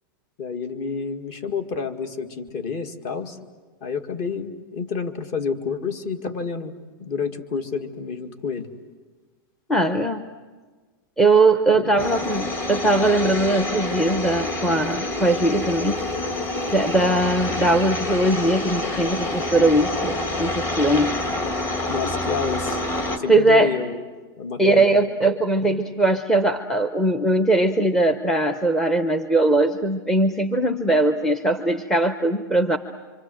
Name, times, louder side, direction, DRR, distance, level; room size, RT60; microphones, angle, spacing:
voice 1, 0.4-3.4 3.8-8.7 11.7-12.1 21.9-22.8 23.2-24.0 24.4-24.9, left 5 dB, 40° left, 8 dB, 1.9 m, -29 dB
voice 2, 9.7-10.2 11.2-16.0 16.7-21.2 23.3-23.7 24.6-32.8, right 2 dB, 5° left, 7 dB, 0.7 m, -20 dB
sound 1, 12.0-23.2, left 2 dB, 20° left, 1.9 m, -27 dB
26.5 x 25.5 x 7.7 m, 1.4 s
supercardioid pair, 160°, 12 cm